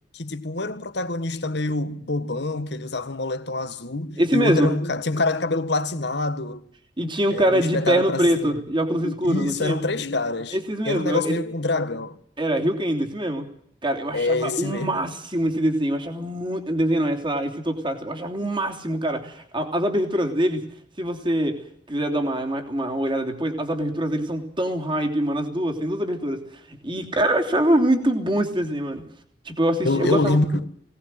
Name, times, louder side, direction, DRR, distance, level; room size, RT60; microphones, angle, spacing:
voice 1, 0.1-6.6 7.3-8.5 9.0-10.6 10.9-12.2 14.1-15.0 29.8-30.6, left 2 dB, 70° left, 1.6 m, -26 dB
voice 2, 4.2-4.7 7.0-9.8 10.5-11.4 12.4-13.5 13.8-20.6 21.0-21.6 21.9-26.4 26.7-29.0 29.4-30.4, right 1 dB, 30° right, 3.1 m, -24 dB
22.0 x 18.0 x 7.8 m
head